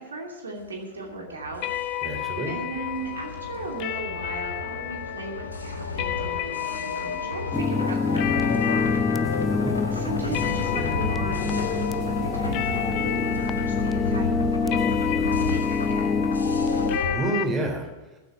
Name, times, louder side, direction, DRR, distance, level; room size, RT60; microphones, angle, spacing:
voice 1, 0.0-1.7 2.5-9.5 9.9-16.3, right 2 dB, 75° right, 0 dB, 2.7 m, -37 dB
sound 1, 1.1-17.2, left 3 dB, 75° left, 1.2 m, -32 dB
sound 2, 1.6-17.4, left 13 dB, 40° left, 1.1 m, -33 dB
voice 2, 2.0-2.5 9.3-9.7 17.1-18.2, right 2 dB, 20° right, 2 dB, 3.4 m, -29 dB
sound 3, 7.5-17.0, left 4 dB, 15° left, 0.5 m, -26 dB
14.0 x 7.9 x 7.9 m, 1.1 s
figure-of-eight pair, 90°, 0 cm